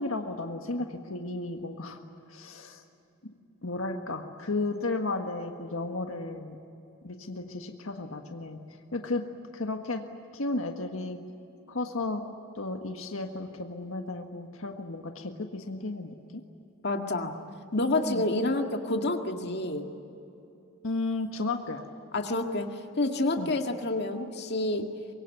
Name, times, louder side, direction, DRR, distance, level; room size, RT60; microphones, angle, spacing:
voice 1, 0.0-2.0 2.3-2.8 3.6-6.6 7.0-8.6 8.9-9.2 9.5-10.0 10.3-11.2 11.7-12.2 12.5-16.1 18.1-18.3 20.8-21.8 23.4-23.5, left 2 dB, 80° left, 4 dB, 1.7 m, -33 dB
voice 2, 16.8-17.4 17.7-19.9 22.1-24.8, left 2 dB, 55° left, 4 dB, 2.0 m, -28 dB
24.5 x 22.5 x 9.4 m, 2.8 s
head